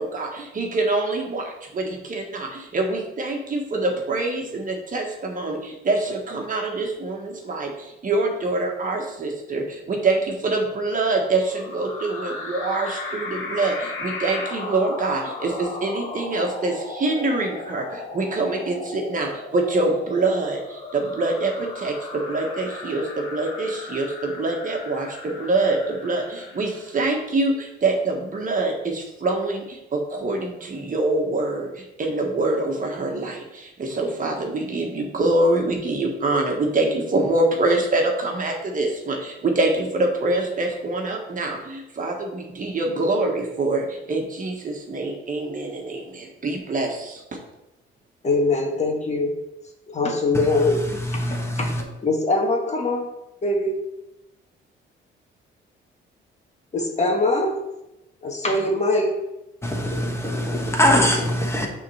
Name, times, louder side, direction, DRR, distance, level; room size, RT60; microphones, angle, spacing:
voice 1, 0.0-47.2, right 2 dB, 40° right, 1.4 m, -25 dB
sound 1, 11.5-27.1, left 3 dB, 75° left, 1.7 m, -36 dB
voice 2, 48.2-49.3 49.9-50.8 51.1-53.1 53.4-53.7 56.7-57.5 58.2-59.1, left 2 dB, 35° left, 1.5 m, -22 dB
voice 3, 51.1-51.8 59.6-61.7, left 1 dB, 15° left, 1.3 m, -22 dB
6.4 x 3.8 x 5.6 m
cardioid pair, 90°, 20 cm